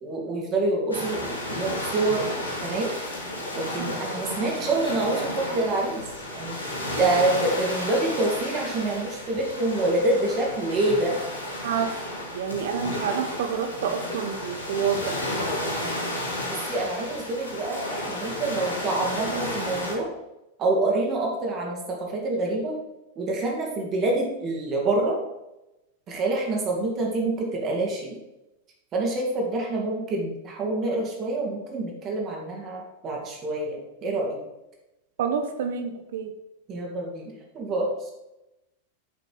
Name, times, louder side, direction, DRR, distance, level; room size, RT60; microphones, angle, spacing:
voice 1, 0.0-2.9 3.5-6.0 6.3-6.6 7.0-11.1 15.8-16.2 16.5-20.1 20.6-22.8 23.2-25.2 26.1-28.2 28.9-34.4 36.7-38.1, right 2 dB, 30° right, -1 dB, 2.7 m, -27 dB
sound 1, 0.9-20.0, left 1 dB, 80° left, 2.4 m, -32 dB
voice 2, 11.6-11.9 12.3-15.1 35.2-36.3, right 7 dB, 55° right, 7 dB, 1.1 m, -28 dB
9.2 x 6.8 x 4.9 m, 0.94 s
figure-of-eight pair, 90°, 0 cm